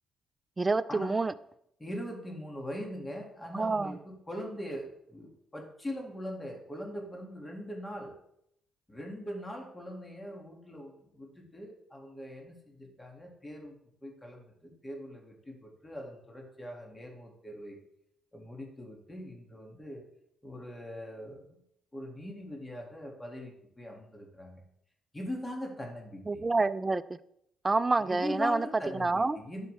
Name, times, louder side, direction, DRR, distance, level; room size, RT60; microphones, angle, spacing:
voice 1, 0.6-1.3 3.5-4.0 26.3-27.0 27.6-28.7 28.9-29.4, right 3 dB, 25° right, 0.4 m, -27 dB
voice 2, 1.8-8.1 8.9-13.8 14.0-17.8 18.3-20.0 20.4-21.6 21.9-24.6 25.1-26.4 28.0-29.7, equal, 15° left, 2.3 m, -41 dB
11.5 x 5.5 x 3.4 m
cardioid pair, 90°, 0 cm